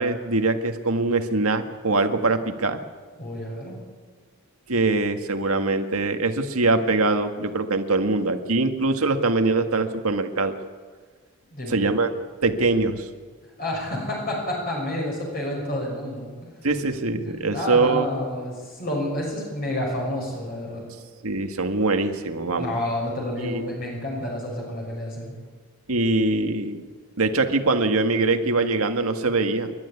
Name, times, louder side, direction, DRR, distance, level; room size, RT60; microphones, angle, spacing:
voice 1, 0.0-2.8 4.7-10.5 11.7-12.1 12.4-13.1 16.6-18.1 21.2-22.8 23.3-23.6 25.9-26.9 27.2-29.7, right 3 dB, 85° right, 6 dB, 1.8 m, -23 dB
voice 2, 3.2-3.8 11.5-11.9 13.6-16.3 17.2-20.9 22.5-25.3, left 1 dB, 45° left, -1 dB, 6.5 m, -29 dB
28.5 x 12.0 x 9.7 m, 1.5 s
head